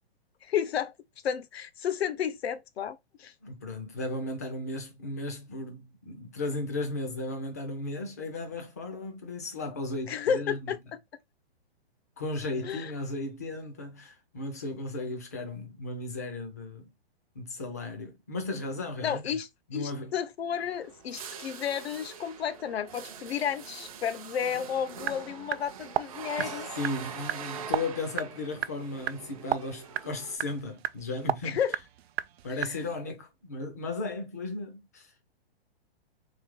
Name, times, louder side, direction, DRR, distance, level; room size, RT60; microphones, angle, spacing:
voice 1, 0.4-0.9 1.2-3.3 10.1-10.8 12.6-12.9 19.0-26.7 31.4-31.7 32.5-33.1, left 8 dB, 85° left, 0.8 m, -32 dB
voice 2, 3.4-10.7 12.2-16.9 17.4-19.4 19.7-20.1 26.4-31.6 32.4-35.1, left 2 dB, 15° left, 0.4 m, -35 dB
sound 1, 20.5-30.4, right 7 dB, 35° right, 0.6 m, -43 dB
sound 2, 25.0-33.0, right 11 dB, 85° right, 0.5 m, -36 dB
3.3 x 3.2 x 3.6 m
hypercardioid pair, 175°, 31 cm